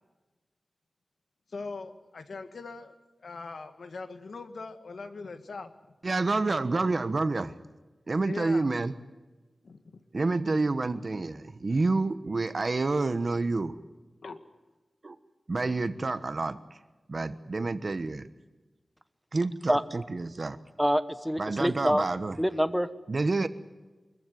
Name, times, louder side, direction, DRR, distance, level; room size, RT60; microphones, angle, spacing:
voice 1, 1.5-2.9 3.2-5.7 6.7-6.9 8.3-8.7 9.6-10.0 14.2-14.4, left 3 dB, 80° left, 8 dB, 1.7 m, -41 dB
voice 2, 6.0-7.5 8.1-8.9 10.1-13.7 15.0-15.2 15.5-16.6 17.1-18.3 19.3-20.6 21.4-22.4 23.1-23.5, right 3 dB, 50° right, 12 dB, 1.2 m, -28 dB
voice 3, 20.8-22.0 22.4-22.9, equal, 5° right, 12 dB, 1.1 m, -26 dB
24.0 x 15.0 x 9.4 m, 1.2 s
wide cardioid pair, 90°, 0 cm